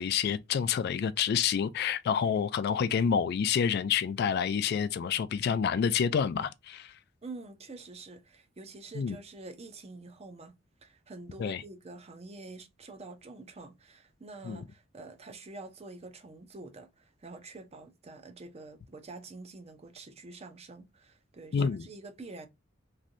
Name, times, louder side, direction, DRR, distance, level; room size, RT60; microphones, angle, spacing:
voice 1, 0.0-6.9 9.0-9.2 11.4-11.6 14.5-14.6 21.5-21.8, left 7 dB, 55° left, 0.3 m, -28 dB
voice 2, 7.2-22.5, right 3 dB, 30° right, 0.6 m, -47 dB
3.2 x 2.6 x 2.5 m
head